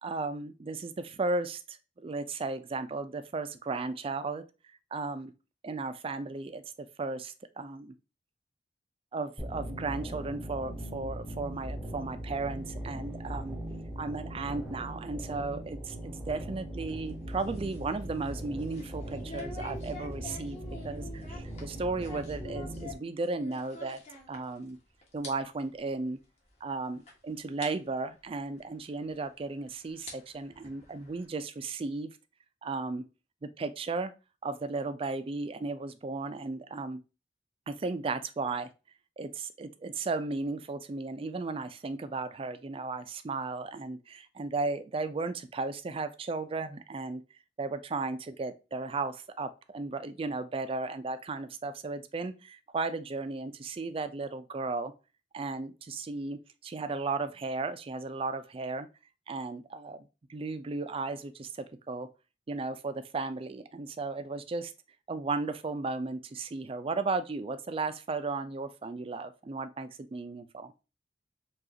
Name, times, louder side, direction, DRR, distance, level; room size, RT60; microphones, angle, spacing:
voice 1, 0.0-5.3 5.6-7.9 9.1-13.6 14.0-20.6 20.8-24.0 24.3-24.8 25.1-26.2 26.6-32.2 32.6-33.0 33.4-34.1 34.4-37.0 37.7-38.7 39.2-47.2 47.6-54.9 55.3-58.9 59.3-62.1 62.5-64.7 65.1-70.7, right 3 dB, 30° right, 0.4 m, -35 dB
sound 1, 9.4-22.9, right 1 dB, 5° right, 0.7 m, -40 dB
sound 2, 16.8-24.8 25.0-25.3 25.6-25.8 26.5-26.6 27.1-27.2 27.6-27.7 29.1-29.2 29.8-31.3, left 2 dB, 40° left, 1.2 m, -47 dB
4.8 x 2.4 x 2.8 m
head